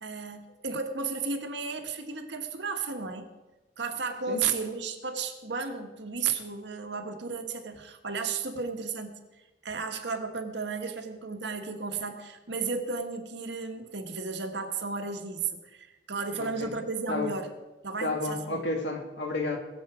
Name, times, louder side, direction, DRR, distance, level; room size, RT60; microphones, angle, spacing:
voice 1, 0.0-3.3 3.8-9.2 9.6-17.5 17.8-18.6, right 5 dB, 80° right, 5 dB, 1.5 m, -33 dB
voice 2, 16.3-16.7 17.1-17.3 18.0-19.6, left 3 dB, 85° left, 3 dB, 2.3 m, -31 dB
21.5 x 7.4 x 5.0 m, 1.1 s
head